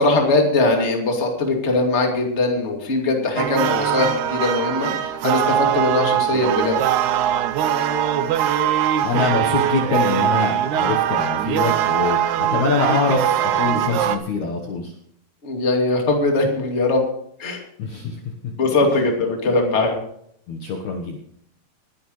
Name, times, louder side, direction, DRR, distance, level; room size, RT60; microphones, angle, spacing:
voice 1, 0.0-6.8 15.4-17.0 17.4-17.6 18.6-20.0, left 2 dB, 20° left, 1 dB, 2.1 m, -20 dB
sound 1, 3.4-14.2, right 10 dB, 90° right, 1.7 m, -21 dB
voice 2, 9.0-14.9 17.8-18.2 20.5-21.2, left 4 dB, 60° left, 1 dB, 2.2 m, -24 dB
21.0 x 10.5 x 3.2 m, 0.68 s
omnidirectional pair, 4.6 m